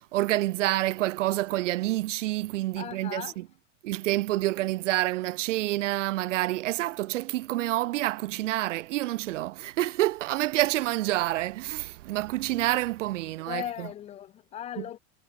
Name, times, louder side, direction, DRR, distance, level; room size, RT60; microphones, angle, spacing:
voice 1, 0.0-3.4 3.8-13.9 14.8-14.9, right 16 dB, 85° right, 0.8 m, -28 dB
voice 2, 2.8-3.4 13.5-15.0, left 11 dB, 20° left, 0.5 m, -37 dB
supercardioid pair, 150°, 36 cm